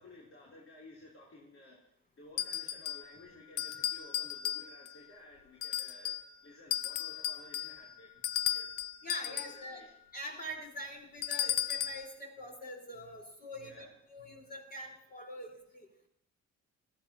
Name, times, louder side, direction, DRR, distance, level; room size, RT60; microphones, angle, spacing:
voice 1, 0.0-1.8 2.2-6.2 6.4-8.1 8.5-8.8 9.2-9.9 13.6-14.0, left 1 dB, 45° left, -4 dB, 3.5 m, -55 dB
sound 1, 2.4-3.1 3.6-5.0 5.6-6.3 6.7-9.6 11.2-12.1, left 11 dB, 85° left, 0.7 m, -35 dB
voice 2, 9.0-9.8 10.1-15.9, equal, 30° left, 0 dB, 4.6 m, -44 dB
20.0 x 15.0 x 3.0 m, 0.69 s
cardioid pair, 90°, 30 cm